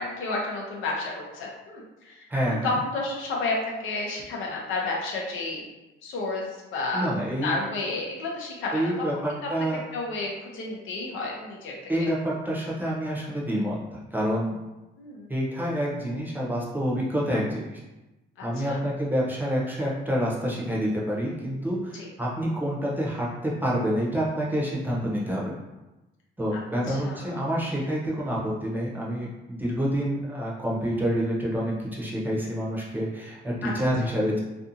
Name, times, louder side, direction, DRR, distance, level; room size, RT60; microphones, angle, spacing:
voice 1, 0.0-5.6 6.0-6.4 6.7-7.1 7.4-8.8 9.1-9.2 9.9-12.1 15.0-15.3 18.4-18.8 21.9-22.1 26.5-26.6 26.9-27.3 33.6-33.7, left 3 dB, 85° left, -2 dB, 0.7 m, -31 dB
voice 2, 2.3-2.7 6.9-7.6 8.7-9.8 11.9-14.6 15.3-17.8 18.4-25.6 26.4-34.4, equal, 10° right, -4 dB, 0.7 m, -28 dB
2.6 x 2.4 x 2.7 m, 1.0 s
cardioid pair, 90°, 20 cm